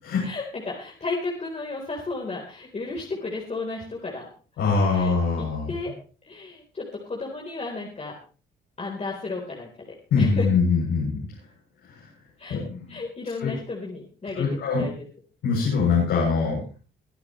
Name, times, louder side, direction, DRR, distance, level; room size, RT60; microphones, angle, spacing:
voice 1, 0.2-4.3 4.9-5.9 6.2-8.1 8.8-9.7 10.2-10.5 12.4-14.9, left 3 dB, 30° left, -2 dB, 4.1 m, -33 dB
voice 2, 4.6-5.7 10.1-11.2 11.8-12.1 12.5-13.0 13.4-13.5 14.3-14.9 15.4-16.6, left 4 dB, 85° left, -5 dB, 7.9 m, -23 dB
23.5 x 10.5 x 3.2 m, 0.38 s
cardioid pair, 90°, 20 cm